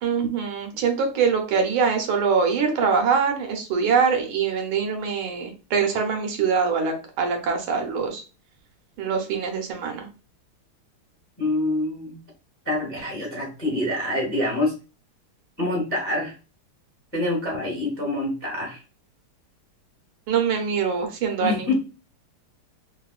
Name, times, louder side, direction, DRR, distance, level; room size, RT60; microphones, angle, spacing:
voice 1, 0.0-8.2 9.0-10.1 20.3-21.7, right 6 dB, 75° right, 3 dB, 1.6 m, -23 dB
voice 2, 11.4-12.2 12.6-14.7 15.6-16.4 17.1-18.8 21.4-21.7, left 2 dB, 10° left, -2 dB, 0.7 m, -26 dB
3.5 x 2.6 x 2.3 m, 0.32 s
omnidirectional pair, 2.4 m